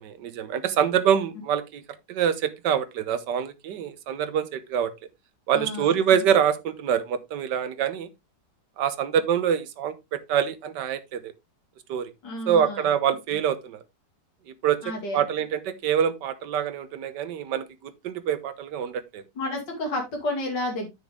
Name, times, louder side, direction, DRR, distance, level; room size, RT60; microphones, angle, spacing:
voice 1, 0.0-1.8 2.1-4.9 5.5-8.1 8.8-11.3 11.9-12.1 12.5-13.8 14.5-19.2, right 8 dB, 75° right, 1.6 m, -25 dB
voice 2, 5.5-5.9 12.2-12.8 14.8-15.2 19.4-20.9, left 1 dB, 80° left, 3.0 m, -30 dB
9.7 x 6.2 x 3.4 m
omnidirectional pair, 1.9 m